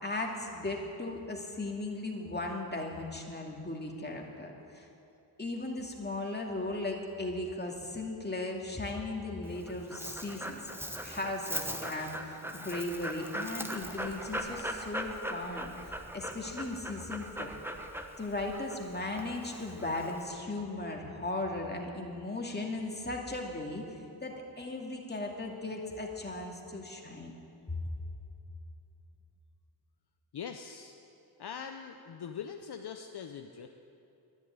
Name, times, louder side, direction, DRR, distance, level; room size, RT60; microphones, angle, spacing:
voice 1, 0.0-4.9 5.4-10.7 11.0-17.5 18.2-23.8 24.2-27.3 27.7-27.8, left 2 dB, 20° left, 0 dB, 2.3 m, -37 dB
Dog, 9.4-20.2, equal, 5° right, 1.1 m, -40 dB
voice 2, 30.3-30.9 31.4-33.7, left 7 dB, 60° left, 5 dB, 0.7 m, -42 dB
11.0 x 10.5 x 9.5 m, 2.9 s
cardioid pair, 75°, 45 cm